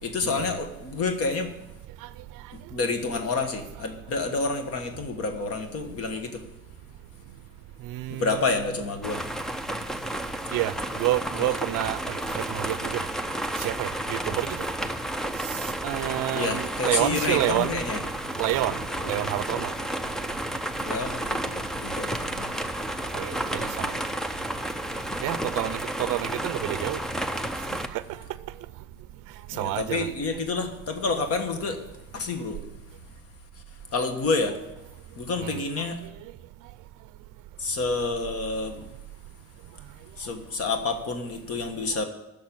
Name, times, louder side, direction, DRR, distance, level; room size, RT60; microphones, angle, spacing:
voice 1, 0.0-1.5 2.7-6.4 8.1-9.2 11.4-11.5 16.3-18.0 19.0-19.1 20.8-22.5 29.5-31.8 32.1-32.6 33.9-34.6 35.2-36.0 37.6-38.8 40.2-42.0, left 3 dB, 45° left, 1.4 m, -29 dB
voice 2, 7.8-8.6 10.5-10.7 11.0-13.0 13.6-14.6 15.8-17.8 18.4-18.8 19.0-19.7 23.1-23.9 25.2-27.0 27.9-28.0 29.6-30.1 35.4-35.6, right 16 dB, 65° right, 0.5 m, -29 dB
sound 1, 9.0-27.9, right 1 dB, ahead, 0.3 m, -31 dB
10.5 x 6.8 x 8.7 m
cardioid pair, 180°, 34 cm